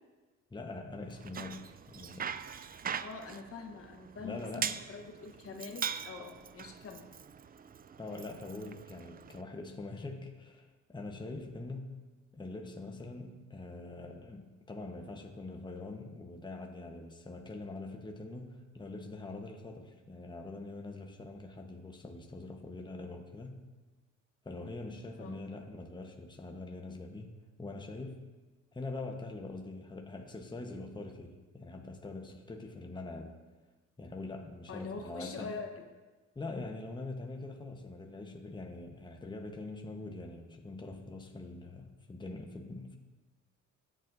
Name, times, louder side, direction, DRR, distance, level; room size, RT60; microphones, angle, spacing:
voice 1, 0.5-2.4 4.2-4.8 8.0-12.0 12.3-23.6 24.4-28.2 28.7-33.4 34.0-35.6 36.3-42.9, left 2 dB, 15° left, 2 dB, 1.1 m, -43 dB
Bicycle, 1.1-9.4, right 7 dB, 30° right, 0.4 m, -42 dB
voice 2, 3.0-7.1 25.2-25.4 34.7-35.8, left 4 dB, 50° left, 4 dB, 1.2 m, -44 dB
17.0 x 7.6 x 2.7 m, 1.2 s
cardioid pair, 90°, 30 cm